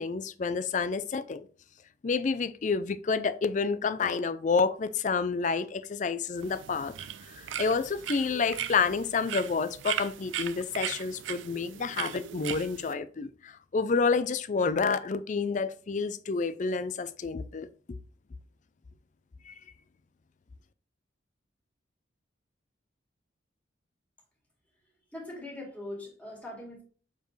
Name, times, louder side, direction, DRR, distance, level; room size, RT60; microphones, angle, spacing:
voice 1, 0.0-1.5 2.0-6.9 7.3-18.0 19.5-19.6, left 4 dB, 40° left, 0.4 m, -29 dB
sound 1, 6.4-12.9, right 10 dB, 80° right, 0.4 m, -38 dB
voice 2, 25.1-26.8, left 1 dB, 10° left, 2.2 m, -41 dB
6.9 x 4.5 x 3.2 m
head